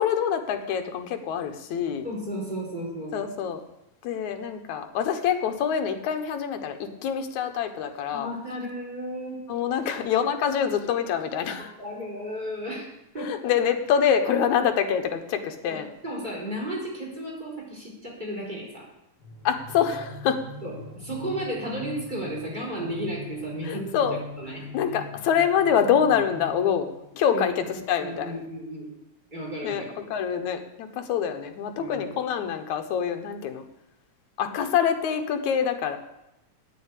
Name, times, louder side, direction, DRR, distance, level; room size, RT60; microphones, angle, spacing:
voice 1, 0.0-2.1 3.1-3.6 4.0-8.3 9.5-11.7 13.2-15.9 19.4-20.4 23.6-24.2 24.7-28.4 29.6-33.6 34.4-36.0, left 8 dB, 80° left, 6 dB, 2.5 m, -25 dB
voice 2, 2.0-3.2 8.1-9.4 11.6-13.3 15.7-18.9 20.6-24.0 24.4-24.6 27.3-27.6 28.0-28.9 29.3-29.9 31.8-32.0, right 1 dB, 15° right, -3 dB, 4.2 m, -34 dB
sound 1, 19.2-27.1, left 2 dB, 45° left, 3.0 m, -42 dB
9.3 x 9.2 x 8.3 m, 0.89 s
omnidirectional pair, 3.3 m